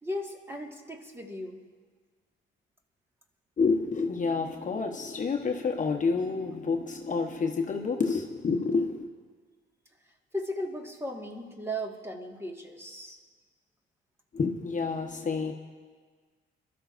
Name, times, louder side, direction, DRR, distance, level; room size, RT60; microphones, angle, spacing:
voice 1, 0.0-1.6 10.3-13.2, equal, 10° right, 1 dB, 1.7 m, -36 dB
voice 2, 3.6-9.1 14.3-15.5, left 4 dB, 40° left, 2 dB, 1.0 m, -28 dB
23.5 x 13.0 x 2.6 m, 1.5 s
cardioid pair, 90°, 20 cm